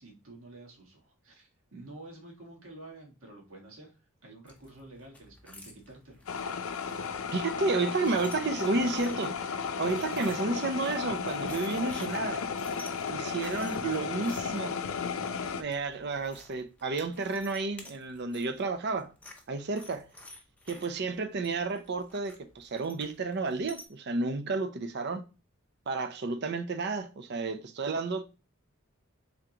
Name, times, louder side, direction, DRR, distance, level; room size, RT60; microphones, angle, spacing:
voice 1, 0.0-6.2 7.0-7.4, right 2 dB, 70° right, 1.5 m, -50 dB
sound 1, 4.5-23.9, left 2 dB, 5° left, 0.6 m, -53 dB
sound 2, 6.3-15.6, left 6 dB, 75° left, 0.5 m, -34 dB
voice 2, 7.3-12.4 13.1-14.8 15.6-19.1 19.5-20.1 20.7-25.2 25.9-28.2, right 3 dB, 50° right, 0.5 m, -31 dB
3.7 x 3.5 x 2.8 m
head